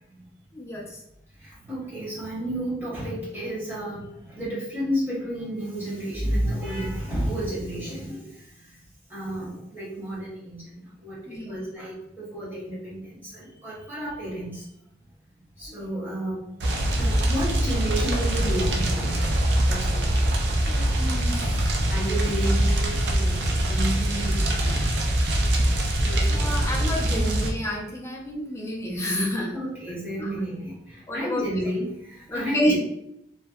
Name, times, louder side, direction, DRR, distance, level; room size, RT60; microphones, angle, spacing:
voice 1, 0.5-1.0 11.3-11.7 15.7-15.8 20.6-21.8 25.9-29.6 30.2-30.3 31.1-31.5 32.3-32.8, equal, 15° left, -1 dB, 0.4 m, -30 dB
voice 2, 1.7-4.0 4.4-8.2 9.1-10.6 11.0-11.2 11.5-13.0 13.3-14.6 15.6-16.3 17.0-19.2 19.7-20.1 21.9-24.8 26.0-26.9 29.5-30.7 31.1-31.9 32.3-32.8, right 1 dB, 10° right, -8 dB, 0.9 m, -31 dB
sound 1, 16.6-27.5, right 1 dB, 75° right, 0.4 m, -23 dB
2.6 x 2.1 x 2.3 m, 0.77 s
head